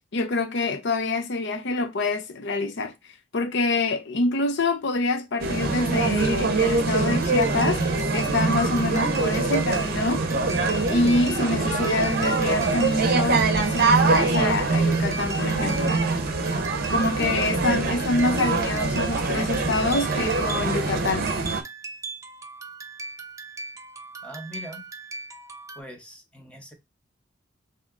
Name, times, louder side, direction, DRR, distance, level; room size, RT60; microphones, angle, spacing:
voice 1, 0.1-2.9 3.3-7.8 8.1-10.3 10.9-16.0 16.9-21.3, left 2 dB, 65° left, 0.6 m, -26 dB
sound 1, 5.4-21.6, right 3 dB, 55° right, 0.6 m, -24 dB
sound 2, 6.9-25.8, right 2 dB, 15° right, 0.4 m, -39 dB
voice 2, 24.2-24.8 25.8-26.7, equal, 5° left, 0.8 m, -41 dB
3.5 x 2.8 x 3.6 m
head